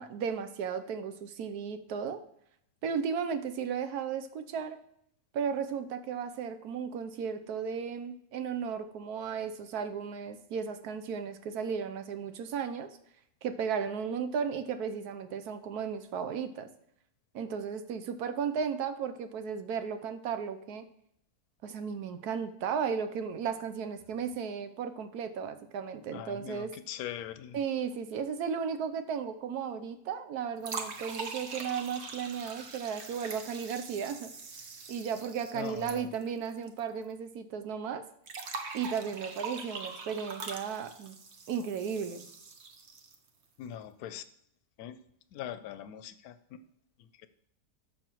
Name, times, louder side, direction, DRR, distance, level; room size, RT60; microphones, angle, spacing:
voice 1, 0.0-2.2 2.8-4.8 5.3-13.0 13.4-16.7 17.3-20.8 21.6-26.7 27.5-34.3 34.9-38.1 38.7-41.2 41.5-42.3, right 6 dB, 80° right, 9 dB, 1.2 m, -35 dB
voice 2, 26.1-27.6 35.5-36.1 43.6-44.2 44.8-45.0 45.3-46.6 47.0-47.3, left 10 dB, 75° left, 12 dB, 1.1 m, -42 dB
sound 1, 30.6-36.8 37.0-37.1 38.3-43.3, right 4 dB, 50° right, 1.1 m, -43 dB
11.5 x 6.9 x 3.1 m, 0.72 s
omnidirectional pair, 1.6 m